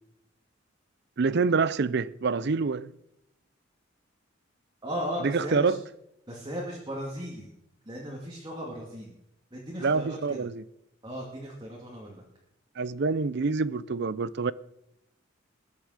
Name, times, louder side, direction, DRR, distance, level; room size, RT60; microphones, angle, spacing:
voice 1, 1.2-2.9 5.2-5.8 9.8-10.6 12.8-14.5, right 4 dB, 55° right, 0.5 m, -26 dB
voice 2, 4.8-5.8 6.3-7.5 7.8-9.2 9.5-10.5 11.0-12.2, equal, 20° right, 2.4 m, -36 dB
20.0 x 7.1 x 6.5 m
head